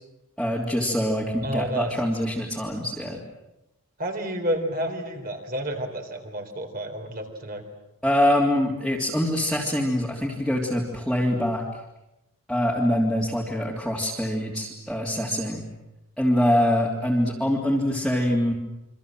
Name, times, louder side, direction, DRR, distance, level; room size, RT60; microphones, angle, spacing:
voice 1, 0.4-3.2 8.0-11.6 12.5-15.6 16.2-18.5, left 1 dB, ahead, -5 dB, 3.0 m, -24 dB
voice 2, 1.4-1.9 4.0-7.6, right 1 dB, 40° right, 4 dB, 4.0 m, -30 dB
28.5 x 25.0 x 7.7 m, 0.92 s
head